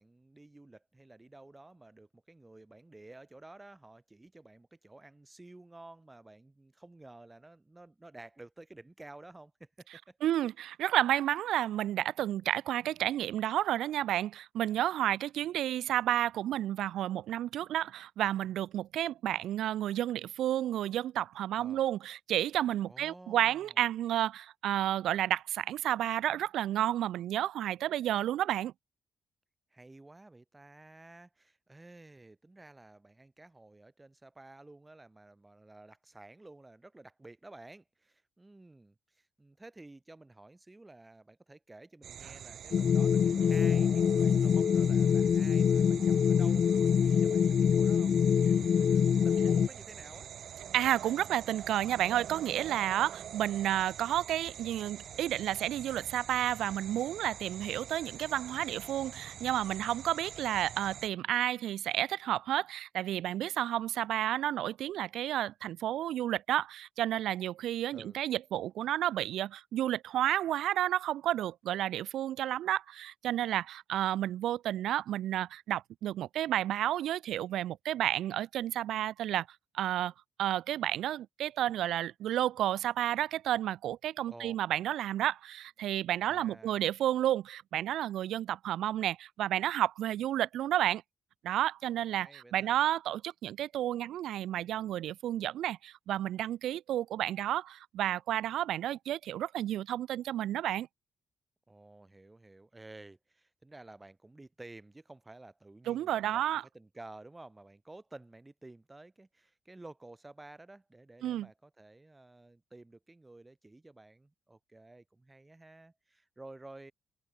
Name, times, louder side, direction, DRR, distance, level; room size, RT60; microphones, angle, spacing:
voice 1, 0.0-10.2 21.6-21.8 22.8-23.8 29.7-48.1 48.4-50.3 67.9-68.2 84.3-84.6 86.3-86.9 92.2-92.8 101.7-106.4 106.7-116.9, right 2 dB, 15° right, 5.5 m, -53 dB
voice 2, 10.2-28.7 50.7-79.5 79.7-80.1 80.4-91.0 91.4-100.9 105.9-106.6 111.2-111.5, right 12 dB, 80° right, 1.3 m, -31 dB
sound 1, 42.0-61.1, right 9 dB, 60° right, 2.5 m, -46 dB
sound 2, 42.7-49.7, left 7 dB, 50° left, 0.5 m, -25 dB
cardioid pair, 105°, 0 cm